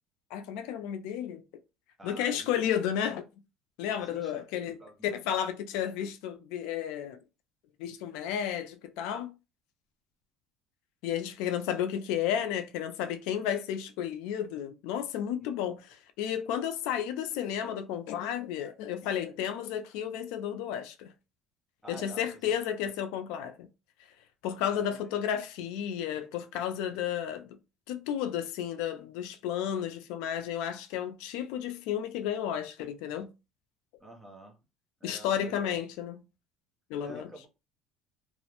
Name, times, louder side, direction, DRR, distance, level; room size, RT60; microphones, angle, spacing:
voice 1, 0.3-1.4 2.0-3.3 3.8-7.2 7.8-9.3 11.0-21.1 21.9-23.7 24.4-27.6 27.9-33.3 35.0-36.2 36.9-37.3, left 9 dB, 75° left, 0.3 m, -32 dB
voice 2, 2.0-2.6 4.1-5.2 15.4-15.5 21.8-22.6 24.8-25.2 34.0-34.6 35.0-35.8 37.0-37.5, right 2 dB, 10° right, 0.5 m, -48 dB
2.3 x 2.0 x 2.8 m
cardioid pair, 170°, 0 cm